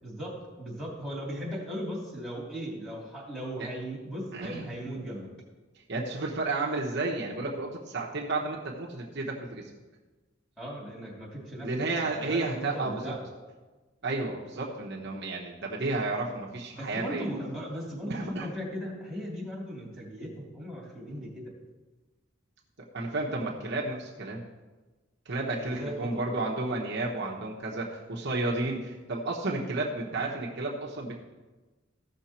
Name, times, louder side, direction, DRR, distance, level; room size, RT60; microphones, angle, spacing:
voice 1, 0.0-5.3 10.6-11.7 12.0-13.3 16.7-21.5 25.6-26.2, equal, ahead, -6 dB, 3.1 m, -37 dB
voice 2, 4.3-4.7 5.9-9.6 11.6-13.1 14.0-17.3 18.1-18.5 21.1-21.2 22.9-24.4 25.2-31.1, right 2 dB, 60° right, -2 dB, 1.2 m, -32 dB
15.5 x 6.0 x 4.4 m, 1.3 s
head